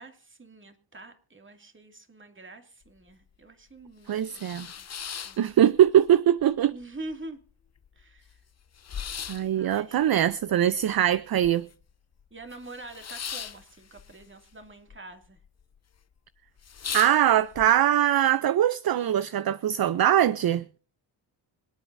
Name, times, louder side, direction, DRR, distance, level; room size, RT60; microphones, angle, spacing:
voice 1, 0.0-4.9 5.2-5.5 6.7-7.4 8.0-8.4 9.5-10.2 12.3-15.4, right 2 dB, 25° right, 2.5 m, -45 dB
sound 1, 2.9-3.0 3.3-3.4 3.9-6.1 6.4-7.1 7.5-7.6 7.8-11.9 12.2-15.0 15.2-15.8 16.2-16.3 16.6-17.7, left 7 dB, 35° left, 0.7 m, -39 dB
voice 2, 4.1-4.7 5.4-6.7 9.3-11.7 16.9-20.6, right 11 dB, 50° right, 0.6 m, -22 dB
26.0 x 8.9 x 2.7 m
cardioid pair, 90°, 45 cm